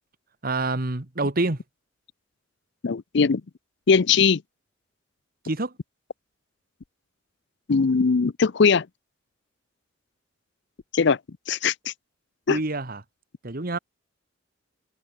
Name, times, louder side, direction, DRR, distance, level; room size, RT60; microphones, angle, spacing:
voice 1, 0.4-1.6 5.4-5.7 12.5-13.0 13.4-13.8, right 2 dB, 45° right, 1.6 m, -27 dB
voice 2, 2.8-3.4 3.9-4.4 7.7-8.9 10.9-11.2 11.5-11.9 12.5-12.6, left 5 dB, 60° left, 0.5 m, -20 dB
head